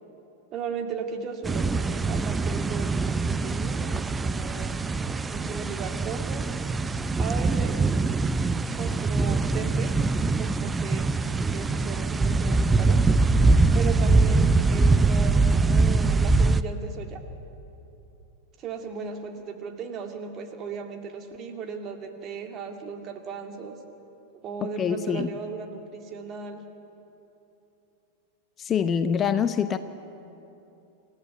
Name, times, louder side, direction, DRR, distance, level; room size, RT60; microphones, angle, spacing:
voice 1, 0.5-4.8 5.0-6.5 7.2-7.8 8.7-9.9 10.4-11.1 11.5-13.0 13.7-17.2 18.6-23.8 24.4-26.6, right 5 dB, 30° right, 5 dB, 2.3 m, -36 dB
sound 1, 1.4-16.6, right 3 dB, 15° right, 0.6 m, -23 dB
voice 2, 24.6-25.3 28.6-29.8, left 7 dB, 25° left, 11 dB, 0.8 m, -25 dB
28.0 x 15.0 x 9.1 m, 2.9 s
figure-of-eight pair, 90°, 0 cm